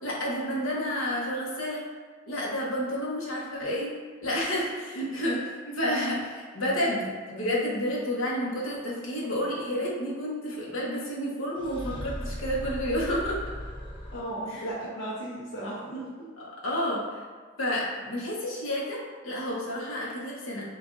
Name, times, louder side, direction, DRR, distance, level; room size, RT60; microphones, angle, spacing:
voice 1, 0.0-1.8 2.3-3.9 4.2-5.4 5.8-13.4 14.5-14.7 16.6-17.2 17.6-20.7, equal, 90° left, -5 dB, 1.1 m, -30 dB
sound 1, 11.6-14.6, equal, 25° left, 0.7 m, -37 dB
voice 2, 14.1-16.3, right 1 dB, 70° left, -7 dB, 1.0 m, -35 dB
6.8 x 2.6 x 2.6 m, 1.5 s
head